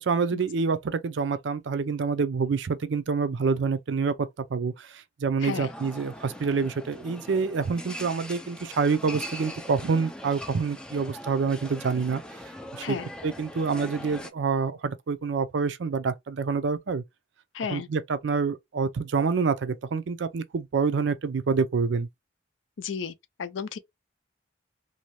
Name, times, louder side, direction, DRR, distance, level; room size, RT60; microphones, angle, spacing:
voice 1, 0.0-12.2 12.7-13.0 13.2-17.0 17.7-22.1, right 5 dB, 70° right, 0.4 m, -27 dB
voice 2, 5.4-5.7 12.8-13.1 17.5-17.9 22.8-23.1 23.4-23.8, left 6 dB, 85° left, 0.4 m, -33 dB
sound 1, 5.5-14.3, equal, 5° left, 0.3 m, -41 dB
2.7 x 2.2 x 3.0 m
head